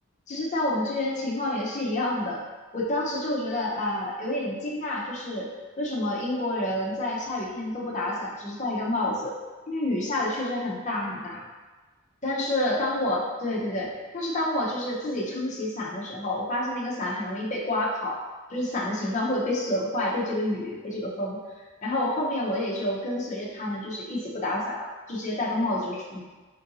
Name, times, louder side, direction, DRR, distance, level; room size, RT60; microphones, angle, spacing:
voice 1, 0.3-2.4 2.7-5.5 5.8-9.3 9.7-11.4 12.2-18.2 18.5-26.2, left 1 dB, 35° left, -4 dB, 0.8 m, -29 dB
4.2 x 3.7 x 2.7 m, 1.3 s
head